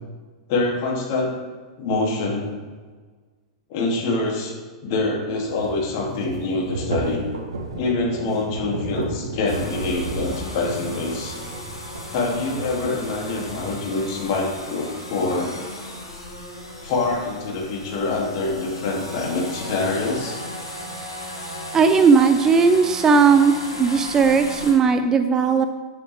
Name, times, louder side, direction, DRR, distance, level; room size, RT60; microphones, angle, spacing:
voice 1, 0.5-1.3 1.8-2.5 3.7-4.6 4.8-7.2 7.8-11.4 12.1-15.5 16.8-20.4, left 3 dB, 45° left, -2 dB, 3.0 m, -25 dB
sound 1, 5.5-13.7, right 3 dB, 70° right, 1.5 m, -33 dB
sound 2, 9.5-24.7, left 1 dB, 90° left, 2.6 m, -36 dB
voice 2, 21.7-25.7, right 5 dB, 20° right, 9 dB, 0.6 m, -17 dB
9.9 x 9.1 x 3.6 m, 1.4 s
figure-of-eight pair, 95°, 3 cm